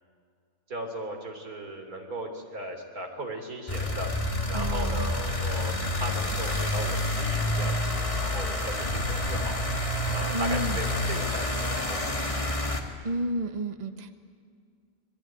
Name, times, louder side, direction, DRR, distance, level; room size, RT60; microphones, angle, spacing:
voice 1, 0.7-4.1 4.5-9.7 10.1-12.5, right 1 dB, 85° right, 4 dB, 3.8 m, -37 dB
sound 1, 3.7-12.8, left 1 dB, 20° left, 2.2 m, -28 dB
voice 2, 4.5-5.1 10.3-10.8 13.0-14.1, right 1 dB, 30° right, 8 dB, 1.2 m, -31 dB
26.5 x 21.5 x 9.2 m, 2.2 s
omnidirectional pair, 1.5 m